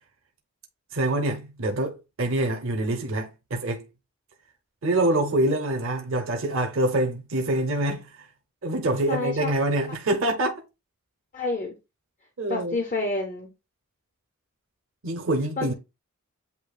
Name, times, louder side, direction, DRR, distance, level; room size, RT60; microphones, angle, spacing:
voice 1, 0.9-3.9 4.8-8.3 8.6-10.6 12.4-12.8 15.0-15.7, right 1 dB, 60° right, 0.7 m, -25 dB
voice 2, 9.1-9.5 11.3-11.7 12.5-13.5 15.6-15.7, left 3 dB, 35° left, 0.6 m, -28 dB
8.1 x 2.7 x 2.4 m
head